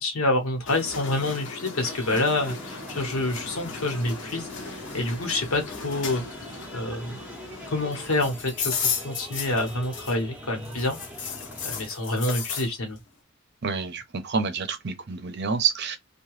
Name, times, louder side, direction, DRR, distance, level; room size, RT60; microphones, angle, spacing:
voice 1, 0.0-6.2 6.7-7.2 7.7-11.0 11.3-11.4 11.6-13.0, left 2 dB, 85° left, 1.1 m, -27 dB
sound 1, 0.7-10.3 10.6-12.7, left 6 dB, 60° left, 0.7 m, -35 dB
sound 2, 1.8-11.9, equal, 5° right, 0.6 m, -43 dB
voice 2, 13.6-16.0, right 6 dB, 50° right, 0.6 m, -28 dB
2.8 x 2.3 x 3.1 m
head